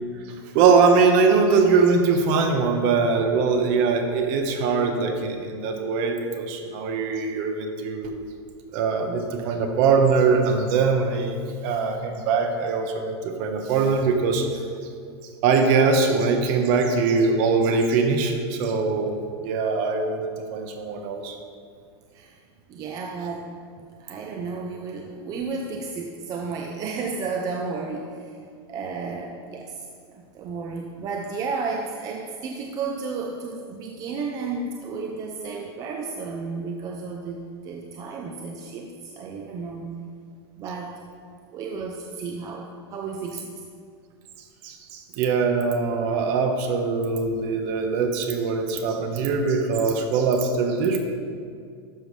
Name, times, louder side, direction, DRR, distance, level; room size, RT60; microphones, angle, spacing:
voice 1, 0.5-8.1 8.7-11.4 11.6-14.5 15.4-19.2 19.4-21.4 44.6-51.0, right 4 dB, 45° right, 5 dB, 1.1 m, -22 dB
voice 2, 22.7-23.5 24.0-28.4 28.7-39.9 40.6-41.0 41.5-43.5, right 4 dB, 25° right, 1 dB, 0.6 m, -33 dB
12.0 x 6.9 x 3.2 m, 2.3 s
supercardioid pair, 155°, 14 cm